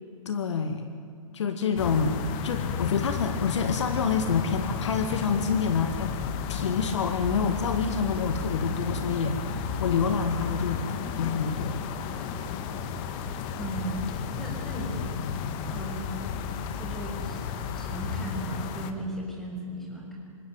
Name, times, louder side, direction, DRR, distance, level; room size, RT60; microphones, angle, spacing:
voice 1, 0.3-1.0 1.3-6.1 6.5-10.8 11.2-11.8, left 6 dB, 55° left, 8 dB, 2.0 m, -27 dB
sound 1, 1.8-18.9, left 6 dB, 30° left, 1.7 m, -33 dB
voice 2, 13.6-14.1 14.4-15.2 15.7-16.1 16.8-17.4 17.7-20.2, right 2 dB, ahead, -2 dB, 6.1 m, -36 dB
27.5 x 16.5 x 9.1 m, 2.4 s
figure-of-eight pair, 130°, 18 cm